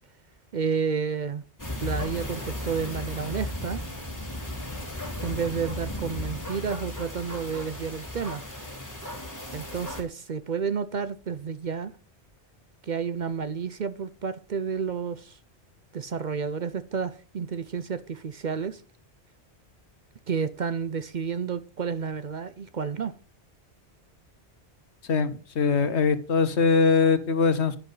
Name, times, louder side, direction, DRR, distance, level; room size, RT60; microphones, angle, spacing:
voice 1, 0.5-1.4 1.8-3.8 5.2-8.4 9.5-11.9 12.8-15.4 15.9-18.8 20.3-23.1, right 6 dB, 50° right, 0.7 m, -31 dB
sound 1, 1.6-10.0, left 1 dB, 15° left, 3.1 m, -35 dB
voice 2, 25.1-27.8, left 5 dB, 80° left, 1.3 m, -22 dB
10.5 x 9.9 x 4.0 m
omnidirectional pair, 1.1 m